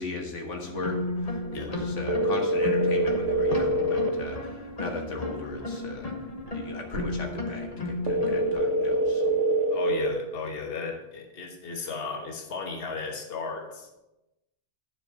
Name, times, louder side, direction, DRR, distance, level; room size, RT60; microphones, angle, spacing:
voice 1, 0.0-6.1 6.5-9.3, left 2 dB, 85° left, 2 dB, 1.7 m, -37 dB
sound 1, 0.6-8.5, left 2 dB, 35° left, 1.2 m, -34 dB
sound 2, 2.1-4.1 8.1-10.1, right 1 dB, 75° right, 1.2 m, -25 dB
voice 2, 9.7-14.0, left 4 dB, 55° left, 2 dB, 1.4 m, -35 dB
10.0 x 4.9 x 6.3 m, 0.96 s
omnidirectional pair, 1.2 m